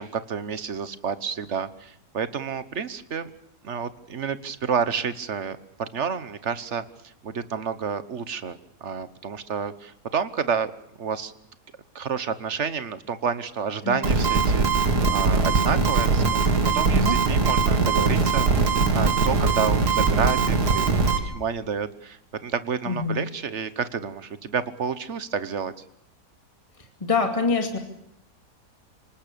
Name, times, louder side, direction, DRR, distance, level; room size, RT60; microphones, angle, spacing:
voice 1, 0.0-3.3 3.6-6.8 7.2-10.7 11.0-11.3 11.9-18.5 18.9-25.7, right 6 dB, 50° right, 13 dB, 1.3 m, -29 dB
sound 1, 14.0-21.2, right 4 dB, 80° right, 2.7 m, -21 dB
voice 2, 22.9-23.2 27.0-27.8, left 4 dB, 20° left, 4 dB, 2.5 m, -24 dB
26.5 x 19.0 x 6.9 m, 0.73 s
omnidirectional pair, 1.7 m